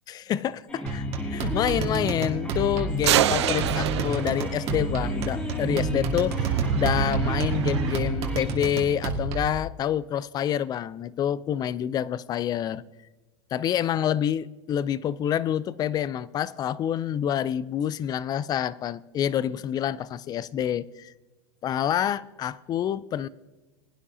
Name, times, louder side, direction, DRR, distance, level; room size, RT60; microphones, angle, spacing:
voice 1, 0.1-1.0 1.3-12.8 13.5-21.1 21.6-23.3, left 10 dB, 30° left, 0.4 m, -27 dB
sound 1, 0.7-8.6, equal, 10° left, 2.2 m, -33 dB
sound 2, 0.9-9.6, right 3 dB, 45° right, 1.9 m, -31 dB
sound 3, 3.1-4.9 6.4-8.0, right 12 dB, 80° right, 0.5 m, -26 dB
20.5 x 10.0 x 2.8 m
hypercardioid pair, 115°, 14 cm